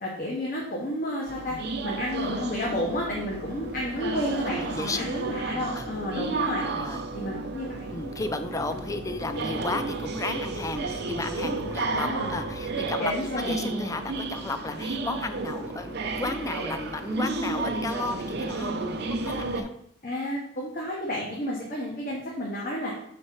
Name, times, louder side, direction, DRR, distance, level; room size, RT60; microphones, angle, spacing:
voice 1, 0.0-6.6 7.1-7.9 11.9-12.3 13.0-14.0 20.0-22.9, left 1 dB, 50° left, -3 dB, 1.2 m, -31 dB
sound 1, 1.3-19.6, right 3 dB, 60° right, 0.7 m, -33 dB
sound 2, 2.1-12.9, right 3 dB, 90° right, 0.9 m, -40 dB
voice 2, 4.5-5.1 5.7-5.9 6.7-7.0 7.9-18.8 19.1-19.7, left 3 dB, 15° left, 8 dB, 0.4 m, -33 dB
5.6 x 4.3 x 4.5 m, 0.70 s
head